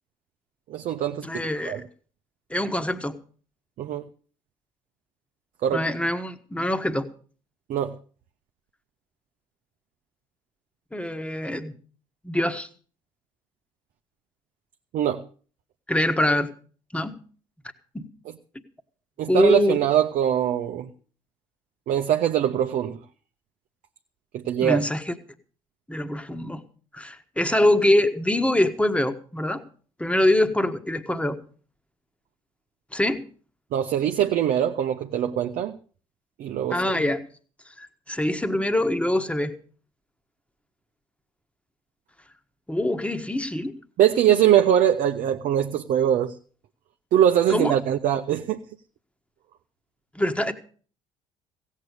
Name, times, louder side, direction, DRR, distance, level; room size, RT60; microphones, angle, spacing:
voice 1, 0.7-1.8 3.8-4.0 5.6-5.8 7.7-8.0 14.9-15.2 19.2-20.9 21.9-23.0 24.3-24.8 33.7-35.8 36.4-37.0 44.0-46.3 47.1-48.6, right 10 dB, 55° right, 0.8 m, -22 dB
voice 2, 1.2-1.8 2.5-3.2 5.7-7.1 10.9-11.7 12.2-12.7 15.9-16.5 16.9-17.2 17.9-18.1 19.3-19.8 24.6-25.1 25.9-26.6 26.9-29.6 30.0-31.4 32.9-33.2 36.7-37.2 37.8-39.5 42.7-43.8 47.5-47.7 50.1-50.5, left 1 dB, 5° left, 1.5 m, -24 dB
16.0 x 8.4 x 6.6 m
hypercardioid pair, 60°, 16 cm